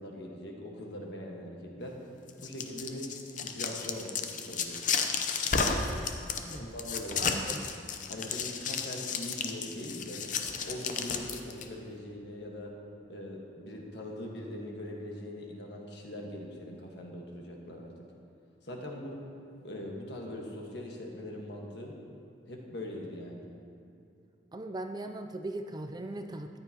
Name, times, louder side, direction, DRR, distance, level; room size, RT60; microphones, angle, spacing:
voice 1, 0.0-2.0 2.4-5.0 5.5-5.9 6.5-7.3 8.1-10.2 10.6-12.7 13.1-17.9 18.6-19.3 19.6-22.0 22.5-23.5, left 1 dB, 65° left, 0 dB, 1.5 m, -41 dB
sound 1, 2.3-11.6, left 5 dB, 45° left, 0.6 m, -33 dB
voice 2, 7.2-7.6 24.5-26.6, right 2 dB, 20° right, 6 dB, 0.4 m, -39 dB
14.0 x 10.0 x 2.9 m, 2.6 s
head